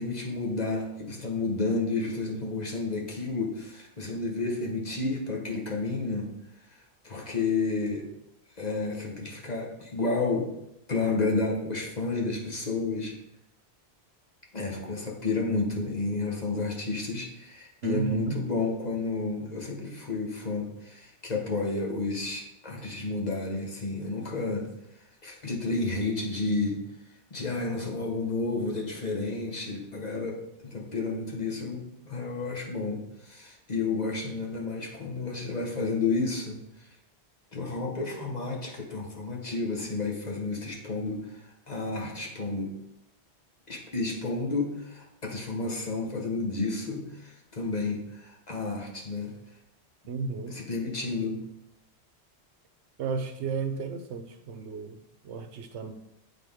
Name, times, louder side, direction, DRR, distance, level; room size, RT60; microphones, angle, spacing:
voice 1, 0.0-6.3 6.7-6.8 7.0-8.1 8.6-10.5 10.9-13.2 14.5-24.7 25.2-26.8 27.3-36.9 37.5-42.8 43.7-49.4 50.5-51.4, left 3 dB, 40° left, 0 dB, 1.1 m, -31 dB
voice 2, 17.8-18.4 50.1-50.6 53.0-55.9, right 4 dB, 80° right, 8 dB, 1.0 m, -33 dB
9.1 x 3.9 x 3.5 m, 0.83 s
omnidirectional pair, 1.1 m